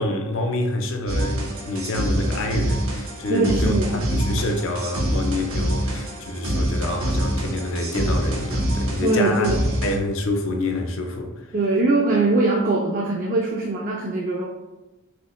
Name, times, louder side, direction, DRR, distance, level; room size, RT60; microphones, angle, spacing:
voice 1, 0.0-9.5 9.8-11.5, left 1 dB, 70° left, 0.5 m, -27 dB
sound 1, 1.1-10.0, right 1 dB, 80° right, 0.8 m, -25 dB
voice 2, 3.3-4.0 9.0-9.6 11.5-14.5, right 2 dB, 40° right, 0.3 m, -21 dB
3.1 x 3.1 x 2.9 m
head